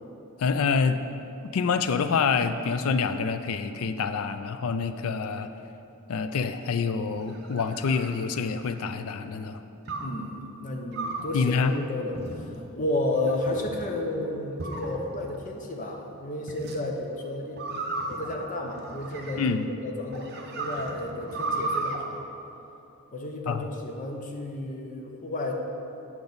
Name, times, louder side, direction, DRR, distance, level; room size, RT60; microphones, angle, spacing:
voice 1, 0.4-1.0 1.5-5.5 6.1-9.6 11.3-11.7 19.4-19.7 23.5-23.6, left 5 dB, 70° left, 10 dB, 0.4 m, -26 dB
sound 1, 7.0-8.9 9.9-10.2 10.9-11.4 12.1-12.7 13.3-13.9 14.6-15.4 16.5-16.8 17.6-19.6 20.1-22.0, right 2 dB, 45° right, 0.7 m, -35 dB
voice 2, 10.0-12.5 12.8-17.8 18.1-22.2 23.1-25.6, left 1 dB, 35° left, 1 dB, 0.7 m, -32 dB
8.5 x 6.0 x 4.0 m, 2.8 s
head